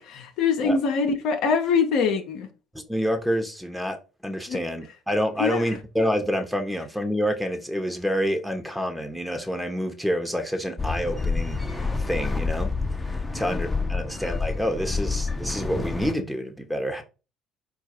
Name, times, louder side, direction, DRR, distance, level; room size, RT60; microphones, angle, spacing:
voice 1, 0.0-2.5 4.5-4.6 5.4-5.8 13.3-13.5 14.0-14.1, left 5 dB, 65° left, 0.7 m, -24 dB
voice 2, 2.9-4.0 4.2-12.7 13.0-17.0, equal, 5° right, 1.0 m, -28 dB
sound 1, 10.8-16.1, left 3 dB, 15° left, 0.8 m, -28 dB
4.5 x 2.4 x 4.4 m
hypercardioid pair, 55°, 0 cm